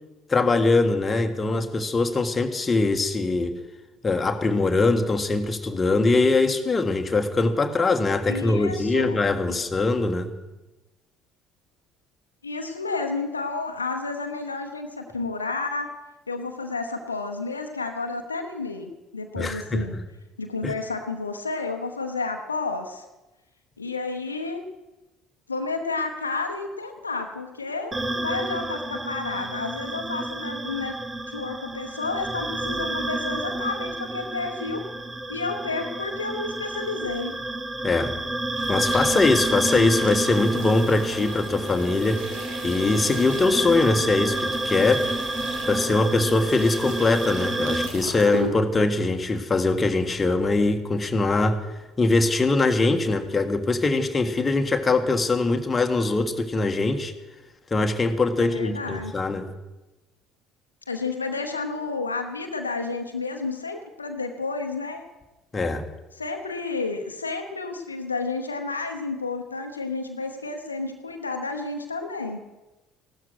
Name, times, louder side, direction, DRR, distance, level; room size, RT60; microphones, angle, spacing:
voice 1, 0.3-3.6 4.0-10.3 19.4-20.0 20.6-20.7 37.8-38.2 38.7-42.3 42.6-45.1 45.7-51.6 52.0-57.1 57.7-59.5 65.5-65.9, left 3 dB, 25° left, 5 dB, 1.6 m, -22 dB
voice 2, 8.3-9.2 9.5-9.6 12.4-15.9 16.3-19.9 20.4-23.0 23.8-24.6 25.5-31.0 31.3-34.8 35.3-37.3 58.4-59.1 60.9-65.0 66.1-72.4, left 3 dB, 85° left, 5 dB, 1.0 m, -31 dB
sound 1, 27.9-47.9, right 2 dB, 20° right, 1.2 m, -30 dB
sound 2, 38.5-48.5, right 1 dB, 65° right, 3.2 m, -38 dB
16.0 x 12.5 x 6.2 m, 1.1 s
figure-of-eight pair, 55°, 0 cm